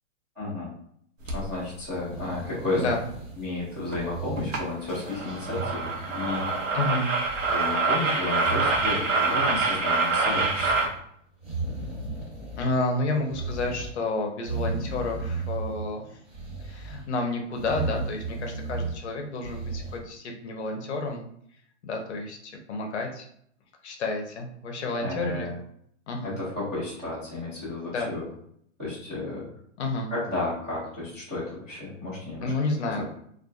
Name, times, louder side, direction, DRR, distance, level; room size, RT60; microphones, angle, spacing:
voice 1, 0.3-0.7 1.3-2.9 3.4-6.8 7.5-10.9 25.0-25.6 26.2-28.3 28.8-29.5 30.1-32.5 32.8-33.0, left 2 dB, 10° right, -16 dB, 0.4 m, -32 dB
sound 1, 1.3-1.5 3.9-4.0 4.4-4.6 4.9-10.9, right 3 dB, 75° right, 0.7 m, -26 dB
sound 2, 2.0-3.6 3.9-4.8 5.2-6.8 7.1-7.8 8.3-9.8 10.2-11.0 11.4-12.9 13.2-14.0 14.4-15.9 16.3-17.0 17.5-19.0 19.4-20.0, right 3 dB, 35° right, 1.3 m, -35 dB
voice 2, 6.7-7.1 12.6-16.2 16.6-21.2 21.8-23.3 23.8-25.5 26.1-26.4 27.9-28.1 29.8-30.1 32.4-33.2, left 2 dB, 60° left, 3 dB, 0.7 m, -30 dB
2.4 x 2.3 x 2.3 m, 0.67 s
hypercardioid pair, 155°, 38 cm